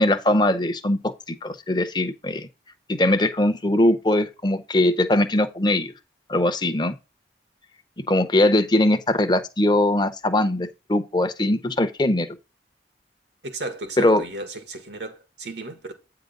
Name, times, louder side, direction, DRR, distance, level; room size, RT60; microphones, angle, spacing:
voice 1, 0.0-2.5 2.9-5.9 6.3-6.9 8.1-12.3 14.0-14.2, left 1 dB, 25° left, 0.7 m, -21 dB
voice 2, 13.4-15.9, right 2 dB, 80° right, 1.7 m, -34 dB
8.9 x 3.7 x 5.3 m
head